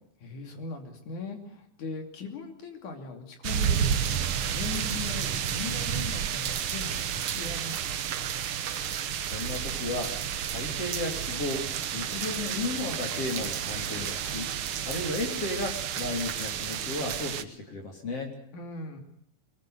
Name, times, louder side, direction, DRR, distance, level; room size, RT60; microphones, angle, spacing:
voice 1, 0.2-8.0 18.5-19.0, left 4 dB, 60° left, 5 dB, 4.2 m, -39 dB
sound 1, 3.4-17.4, right 8 dB, 80° right, 1.1 m, -31 dB
voice 2, 8.8-11.7 11.9-14.5 14.8-18.3, left 2 dB, 45° left, 3 dB, 4.0 m, -34 dB
22.0 x 20.0 x 7.9 m, 0.69 s
omnidirectional pair, 4.0 m